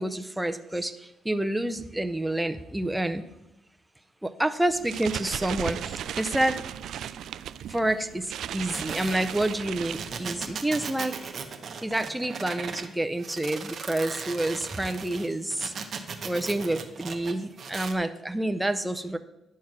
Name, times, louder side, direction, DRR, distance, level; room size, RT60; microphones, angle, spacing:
voice 1, 0.0-3.3 4.2-6.6 7.7-11.3 11.8-15.7 16.2-19.2, right 1 dB, 10° right, 9 dB, 0.5 m, -28 dB
sound 1, 4.7-10.6, right 9 dB, 70° right, 0.3 m, -36 dB
sound 2, 8.7-12.9 13.2-17.9, right 5 dB, 50° right, 1.0 m, -37 dB
10.5 x 4.7 x 6.0 m, 0.89 s
cardioid pair, 90°, 0 cm